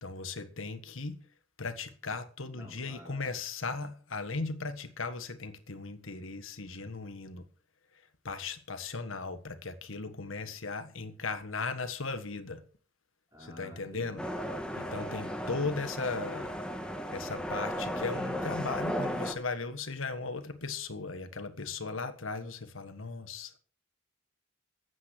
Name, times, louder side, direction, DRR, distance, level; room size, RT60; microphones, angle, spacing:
voice 1, 0.0-1.2 1.6-7.4 8.2-12.6 13.4-14.2 14.8-16.6 17.1-23.5, left 4 dB, 85° left, 1.5 m, -37 dB
voice 2, 2.5-3.4 13.3-14.6 14.9-15.7, left 1 dB, 15° right, 5.3 m, -50 dB
sound 1, 14.2-19.3, equal, 5° left, 1.9 m, -35 dB
15.0 x 9.6 x 6.1 m
head